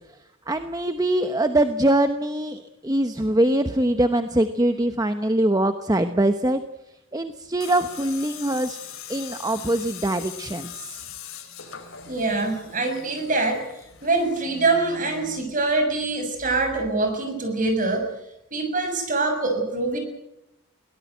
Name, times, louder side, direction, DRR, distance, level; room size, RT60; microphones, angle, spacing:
voice 1, 0.5-6.6 7.1-8.8 9.1-10.9, right 1 dB, 15° right, 8 dB, 0.9 m, -23 dB
Tools, 7.6-15.4, left 8 dB, 70° left, 4.4 m, -41 dB
voice 2, 12.1-13.6 14.0-18.1 18.5-20.0, right 3 dB, 40° right, 5 dB, 6.7 m, -24 dB
22.5 x 18.0 x 9.3 m, 0.86 s
head